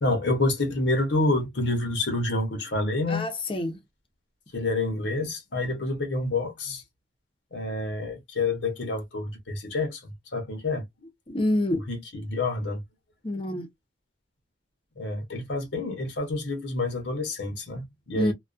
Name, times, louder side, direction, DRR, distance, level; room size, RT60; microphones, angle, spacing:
voice 1, 0.0-3.3 4.5-6.8 7.5-11.1 11.9-12.8 15.0-18.3, left 2 dB, 70° left, 0.9 m, -28 dB
voice 2, 3.1-3.8 11.3-11.8 13.2-13.7 18.1-18.3, left 1 dB, 30° left, 0.7 m, -27 dB
2.3 x 2.3 x 2.4 m
head